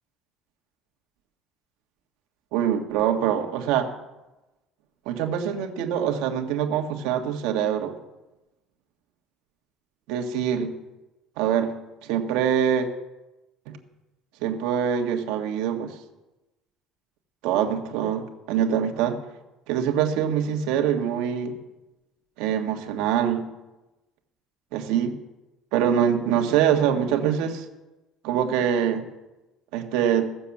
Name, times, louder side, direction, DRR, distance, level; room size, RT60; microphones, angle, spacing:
voice 1, 2.5-3.9 5.0-8.0 10.1-10.7 11.4-11.7 12.0-12.9 13.7-13.8 14.4-16.0 17.4-19.2 19.7-21.6 22.4-23.5 24.7-25.1 25.7-27.6 28.2-29.1 29.7-30.3, right 9 dB, 75° right, 4 dB, 1.6 m, -24 dB
16.0 x 7.1 x 7.2 m, 1.0 s
cardioid pair, 175°, 0 cm